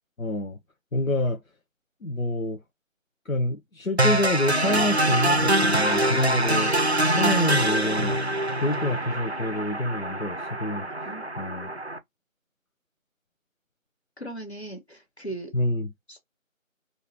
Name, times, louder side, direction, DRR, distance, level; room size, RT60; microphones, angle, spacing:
voice 1, 0.2-0.6 0.9-1.4 2.0-2.6 3.3-6.7 7.2-8.2 8.6-10.9 11.4-11.7 15.5-15.9, left 1 dB, 75° left, 0.9 m, -27 dB
sound 1, 4.0-12.0, right 1 dB, 50° right, 0.5 m, -24 dB
voice 2, 14.2-15.5 16.1-16.2, right 2 dB, 50° left, 1.4 m, -38 dB
3.8 x 2.7 x 2.9 m
figure-of-eight pair, 180°, 41 cm